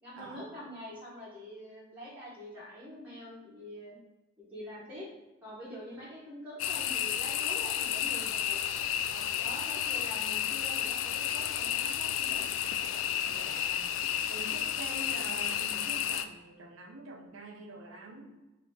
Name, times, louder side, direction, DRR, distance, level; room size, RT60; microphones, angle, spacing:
voice 1, 0.0-4.0 4.4-5.1 5.4-8.6 9.1-12.5, equal, 10° right, -10 dB, 1.2 m, -45 dB
sound 1, 6.6-16.2, left 10 dB, 85° left, 0.3 m, -32 dB
voice 2, 13.3-13.9 14.3-18.3, right 2 dB, 90° right, 2 dB, 0.7 m, -45 dB
3.7 x 2.9 x 3.5 m, 1.1 s
head